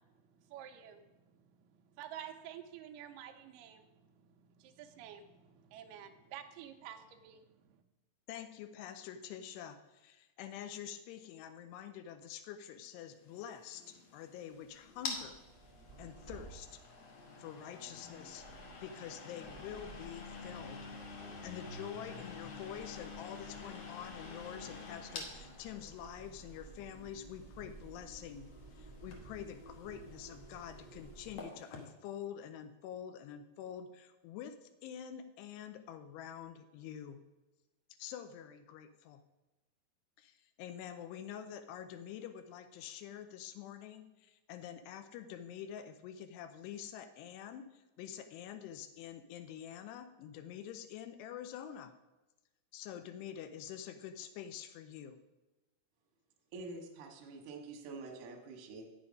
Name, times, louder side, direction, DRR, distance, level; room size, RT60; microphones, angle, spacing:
voice 1, 0.4-7.7, right 10 dB, 80° right, 4 dB, 2.0 m, -51 dB
voice 2, 8.3-15.4 16.0-16.8 17.4-18.5 18.8-20.9 21.4-37.2 38.0-39.2 40.2-51.9 52.7-55.2, left 9 dB, 85° left, 8 dB, 2.7 m, -47 dB
sound 1, 13.2-31.9, left 4 dB, 70° left, 1.5 m, -49 dB
sound 2, 14.7-17.3 18.0-31.4, right 3 dB, 20° left, 0.9 m, -55 dB
voice 3, 56.5-58.8, right 3 dB, 60° right, 1 dB, 1.5 m, -47 dB
9.0 x 6.9 x 5.2 m, 1.1 s
omnidirectional pair, 4.7 m